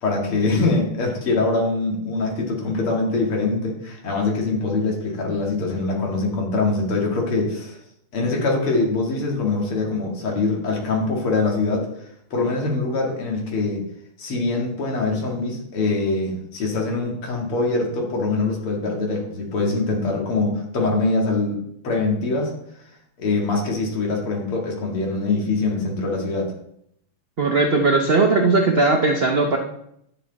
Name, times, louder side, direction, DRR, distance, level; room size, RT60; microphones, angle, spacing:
voice 1, 0.0-7.8 8.1-11.9 12.3-13.8 14.2-21.6 21.8-22.5 23.2-26.5, left 3 dB, 75° left, 0 dB, 3.0 m, -23 dB
voice 2, 27.4-29.6, right 3 dB, 70° right, 3 dB, 0.5 m, -18 dB
10.0 x 8.0 x 4.1 m, 0.74 s
omnidirectional pair, 2.4 m